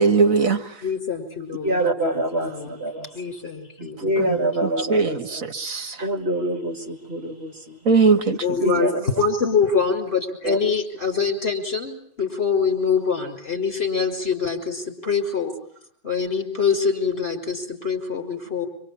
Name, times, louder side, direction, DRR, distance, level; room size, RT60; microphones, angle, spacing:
voice 1, 0.0-0.8 4.2-6.1 7.9-8.4, right 4 dB, 65° right, 1.8 m, -20 dB
voice 2, 0.8-2.8 3.1-4.0 8.4-15.5 16.0-18.7, left 5 dB, 40° left, 6.3 m, -24 dB
voice 3, 1.6-3.1 3.8-5.2 6.0-7.8 8.6-9.0 10.4-10.6, right 1 dB, 45° right, 2.6 m, -25 dB
26.5 x 26.0 x 8.7 m
omnidirectional pair, 1.5 m